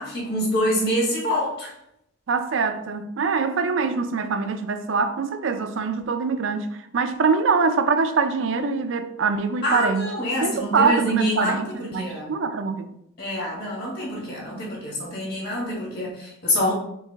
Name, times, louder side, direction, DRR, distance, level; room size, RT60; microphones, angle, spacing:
voice 1, 0.0-1.7 9.6-12.3 13.2-16.7, equal, 50° left, 1.8 m, -26 dB
voice 2, 2.3-6.7 6.9-10.1 10.4-12.9, right 5 dB, 65° right, 0.4 m, -24 dB
4.7 x 3.4 x 3.4 m
head